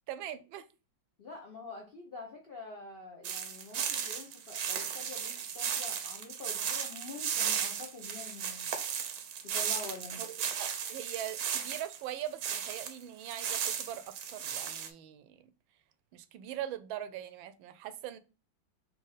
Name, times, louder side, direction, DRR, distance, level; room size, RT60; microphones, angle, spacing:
voice 1, 0.1-0.7 10.1-15.5 16.1-18.2, right 11 dB, 85° right, 1.3 m, -41 dB
voice 2, 1.2-8.7 9.4-10.3, left 3 dB, 65° left, 0.5 m, -46 dB
sound 1, 3.2-12.9 13.3-14.9, right 8 dB, 65° right, 1.0 m, -35 dB
4.2 x 3.1 x 3.8 m
omnidirectional pair, 2.1 m